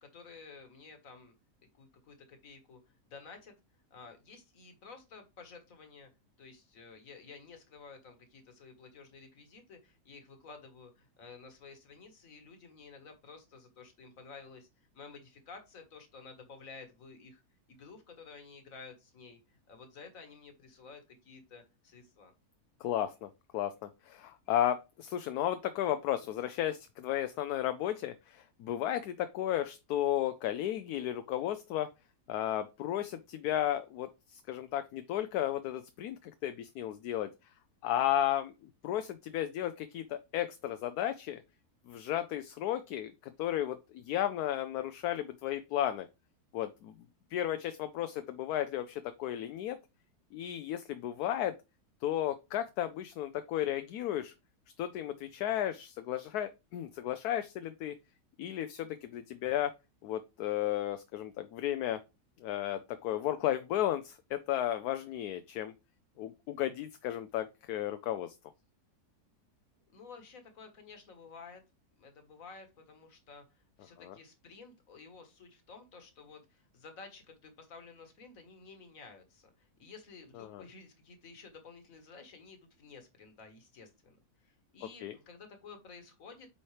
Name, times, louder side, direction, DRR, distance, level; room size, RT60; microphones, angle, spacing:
voice 1, 0.0-1.3 1.7-3.5 3.9-6.1 6.4-14.7 14.9-17.4 17.7-22.3 69.9-71.6 72.0-84.2 84.4-86.5, left 4 dB, 55° left, 6 dB, 1.8 m, -52 dB
voice 2, 22.8-31.9 32.3-37.3 37.8-38.5 38.8-41.4 41.9-46.1 46.5-46.9 47.3-49.8 50.3-51.6 52.0-54.3 54.8-57.9 58.4-59.7 60.0-62.0 62.4-65.7 66.2-68.3 74.0-74.2 80.4-80.6 85.0-85.1, left 12 dB, 75° left, 10 dB, 1.1 m, -34 dB
8.5 x 4.3 x 3.2 m, 0.25 s
omnidirectional pair, 1.7 m